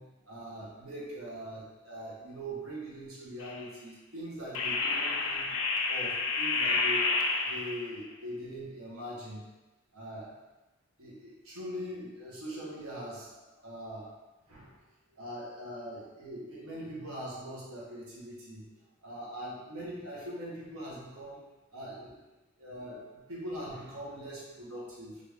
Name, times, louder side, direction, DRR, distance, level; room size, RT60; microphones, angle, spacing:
voice 1, 0.0-5.5 5.9-7.1 7.4-9.4 9.9-10.3 11.0-14.1 14.5-14.7 15.1-18.7 19.0-21.4 21.7-22.2 22.6-25.2, equal, 85° right, -5 dB, 1.0 m, -42 dB
sound 1, 3.4-3.6 4.5-7.9, left 3 dB, 90° left, 0.4 m, -29 dB
3.3 x 2.5 x 3.3 m, 1.1 s
head